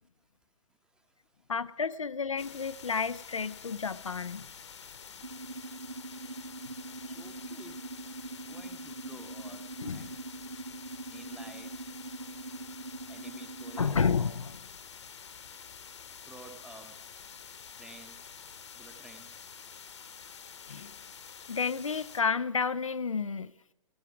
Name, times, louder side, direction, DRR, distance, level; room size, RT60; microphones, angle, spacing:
voice 1, 0.8-1.5 5.1-5.5 7.1-7.8 8.5-10.2 11.1-11.9 13.1-14.0 16.2-17.0 17.8-18.3 18.7-19.4, right 3 dB, 5° right, 1.0 m, -52 dB
voice 2, 1.5-4.5 9.8-10.1 13.8-14.7 20.7-20.9 21.5-23.5, left 5 dB, 75° left, 0.6 m, -31 dB
sound 1, 2.4-22.2, left 7 dB, 60° left, 1.2 m, -48 dB
sound 2, 5.2-13.9, right 3 dB, 85° right, 1.0 m, -43 dB
17.0 x 11.5 x 6.1 m
figure-of-eight pair, 120°, 17 cm